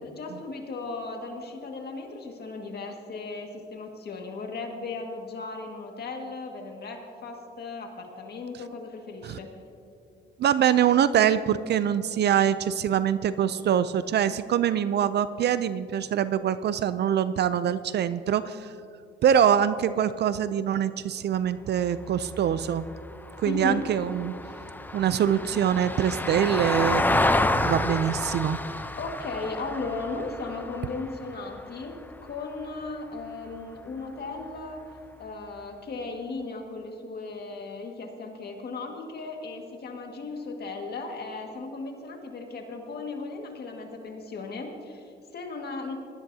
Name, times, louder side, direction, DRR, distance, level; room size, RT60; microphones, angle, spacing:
voice 1, 0.0-9.5 23.5-23.8 28.9-34.8 35.2-46.0, left 3 dB, 55° left, 2 dB, 1.9 m, -36 dB
voice 2, 10.4-18.7 19.2-22.8 23.4-24.3 24.9-27.3 27.6-28.6, right 9 dB, 60° right, 14 dB, 0.4 m, -24 dB
Vehicle, 21.8-32.3 34.6-34.7, left 2 dB, 10° left, 0.6 m, -30 dB
19.5 x 13.0 x 2.8 m, 2.5 s
cardioid pair, 90°, 20 cm